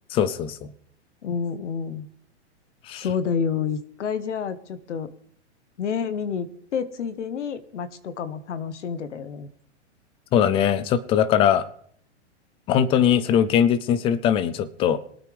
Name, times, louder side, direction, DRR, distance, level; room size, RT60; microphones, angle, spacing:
voice 1, 0.1-0.7 2.8-3.1 10.3-11.7 12.7-15.0, left 9 dB, 15° left, 18 dB, 0.5 m, -21 dB
voice 2, 1.2-2.1 2.9-5.1 5.8-9.5, left 6 dB, 85° left, 13 dB, 1.3 m, -29 dB
22.0 x 9.2 x 3.4 m, 0.64 s
hypercardioid pair, 140°, 35 cm